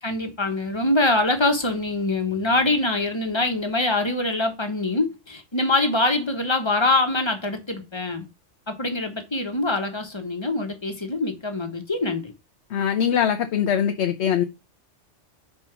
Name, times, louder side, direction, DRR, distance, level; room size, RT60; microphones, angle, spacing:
voice 1, 0.0-8.3 8.7-12.3, left 2 dB, 25° left, 1.2 m, -24 dB
voice 2, 12.7-14.4, left 8 dB, 70° left, 0.9 m, -22 dB
5.3 x 4.3 x 5.9 m
omnidirectional pair, 1.2 m